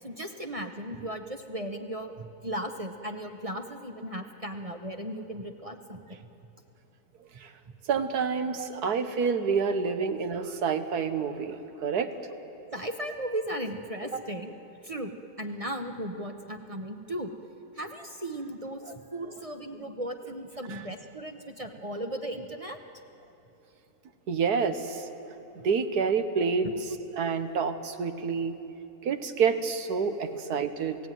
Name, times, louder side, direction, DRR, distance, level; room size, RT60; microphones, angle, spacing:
voice 1, 0.0-6.2 7.7-7.8 8.5-8.7 12.7-17.3 17.7-22.8 26.6-26.7 30.3-30.4, right 1 dB, 25° right, 5 dB, 0.9 m, -36 dB
voice 2, 7.9-12.1 20.7-20.8 24.3-25.1 25.6-26.7 27.2-28.6 29.0-31.0, right 6 dB, 75° right, 9 dB, 1.7 m, -28 dB
28.0 x 17.5 x 9.3 m, 3.0 s
omnidirectional pair, 1.7 m